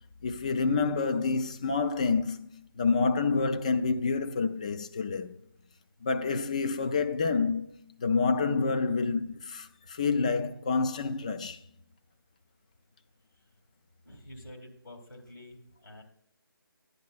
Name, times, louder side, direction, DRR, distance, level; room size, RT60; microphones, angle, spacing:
voice 1, 0.2-5.4 6.0-7.7 8.0-11.6, left 4 dB, 20° left, 0.3 m, -28 dB
voice 2, 14.0-16.0, left 1 dB, 75° left, 3.2 m, -48 dB
10.5 x 10.5 x 2.4 m
figure-of-eight pair, 150°, 12 cm